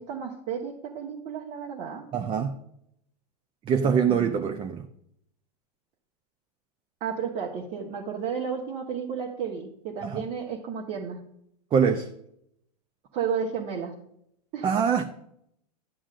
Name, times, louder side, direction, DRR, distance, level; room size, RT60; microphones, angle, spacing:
voice 1, 0.0-2.0 3.8-4.5 7.0-11.2 13.1-13.9 14.5-14.7, right 6 dB, 45° right, 1.3 m, -33 dB
voice 2, 2.1-2.5 3.7-4.9 10.0-10.2 11.7-12.1 14.6-15.0, right 7 dB, 25° right, 0.6 m, -24 dB
11.5 x 7.1 x 2.5 m
hypercardioid pair, 110°, 21 cm